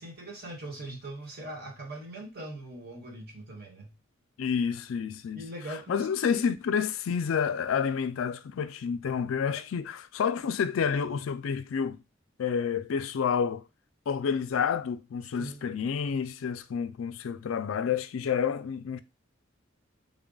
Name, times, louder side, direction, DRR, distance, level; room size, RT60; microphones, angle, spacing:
voice 1, 0.0-4.0 5.3-6.4 9.6-9.7 15.4-15.6, right 1 dB, 55° right, 1.3 m, -41 dB
voice 2, 4.4-5.4 5.9-12.0 12.4-13.6 14.1-19.0, left 7 dB, 80° left, 0.4 m, -29 dB
3.7 x 2.3 x 3.8 m
head